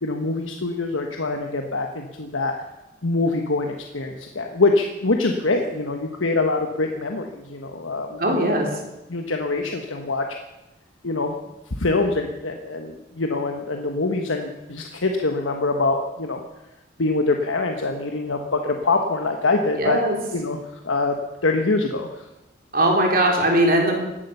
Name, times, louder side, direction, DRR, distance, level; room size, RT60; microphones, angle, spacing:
voice 1, 0.0-2.5 3.0-8.5 9.1-10.3 11.0-11.3 11.8-16.4 17.0-20.0 20.3-21.2 21.4-22.3, left 3 dB, 85° left, 4 dB, 1.3 m, -24 dB
voice 2, 8.2-8.7 19.8-20.2 22.7-24.0, right 1 dB, 45° right, 1 dB, 3.7 m, -19 dB
17.5 x 11.5 x 6.9 m, 0.99 s
head